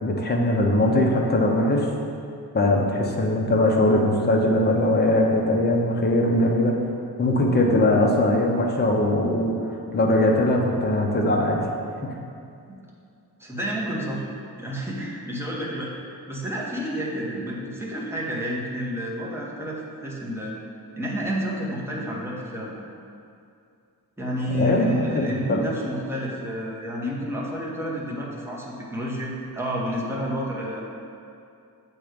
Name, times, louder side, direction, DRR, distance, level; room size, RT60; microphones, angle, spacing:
voice 1, 0.0-1.9 2.5-6.7 7.2-9.6 9.9-11.6 12.0-12.1 24.5-25.6, left 1 dB, 25° left, 0 dB, 0.6 m, -21 dB
voice 2, 13.4-14.2 14.6-15.9 16.3-20.5 21.0-22.7 24.2-30.8, equal, 5° right, -5 dB, 0.8 m, -30 dB
7.8 x 3.0 x 5.0 m, 2.5 s
wide cardioid pair, 175°, 39 cm